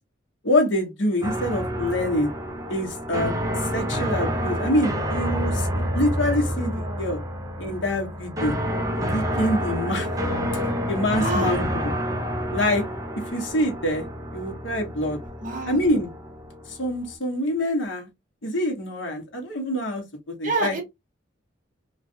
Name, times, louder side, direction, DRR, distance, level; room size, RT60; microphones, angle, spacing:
voice 1, 0.4-2.3 2.7-7.2 7.6-8.5 8.9-10.1 10.9-11.9 12.5-12.9 13.3-14.1 14.3-15.2 15.7-16.1 16.7-18.1 18.4-20.8, left 1 dB, 80° left, 1.1 m, -25 dB
sound 1, 1.2-17.1, equal, 20° right, 0.7 m, -28 dB
voice 2, 6.6-7.0 11.2-11.6 15.4-15.8 20.4-20.8, right 2 dB, 45° right, 1.3 m, -28 dB
3.1 x 2.4 x 2.7 m
head